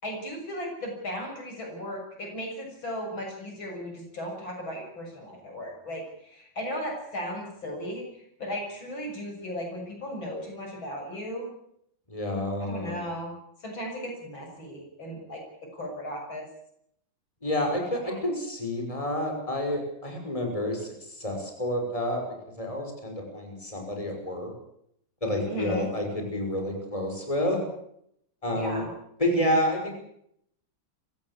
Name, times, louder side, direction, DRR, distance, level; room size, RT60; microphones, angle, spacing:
voice 1, 0.0-11.5 12.6-13.3 13.6-16.5 18.1-18.2 25.5-25.9 28.5-28.9, equal, 85° left, 2 dB, 7.4 m, -36 dB
voice 2, 12.1-13.0 17.4-22.2 22.6-24.5 25.2-27.6 28.4-28.8 29.2-29.9, left 1 dB, 15° left, 3 dB, 5.9 m, -29 dB
25.0 x 16.0 x 8.3 m, 0.72 s
omnidirectional pair, 2.1 m